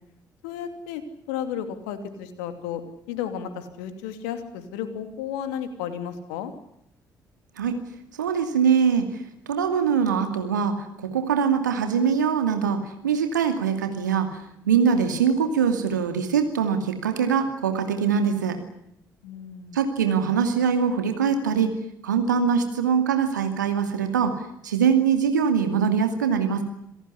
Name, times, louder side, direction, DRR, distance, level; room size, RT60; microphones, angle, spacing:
voice 1, 0.4-2.8 3.1-6.5 19.2-19.8, left 9 dB, 70° left, 8 dB, 2.8 m, -33 dB
voice 2, 8.2-14.4 14.7-18.6 19.7-21.7 22.0-24.3 24.6-26.6, right 7 dB, 80° right, 6 dB, 2.5 m, -23 dB
27.5 x 18.0 x 9.8 m, 0.74 s
figure-of-eight pair, 45°, 10 cm